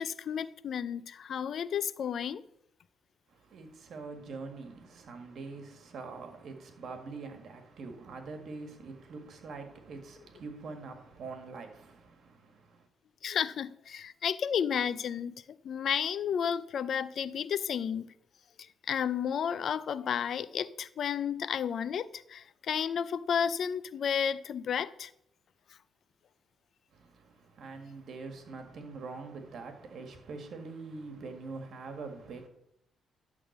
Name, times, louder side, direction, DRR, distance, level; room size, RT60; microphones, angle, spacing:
voice 1, 0.0-2.4 13.2-18.1 18.6-25.1, left 8 dB, 60° left, 0.4 m, -32 dB
voice 2, 3.3-12.9 26.9-32.5, right 4 dB, 65° right, 1.7 m, -44 dB
11.0 x 3.7 x 7.1 m
cardioid pair, 90°, 0 cm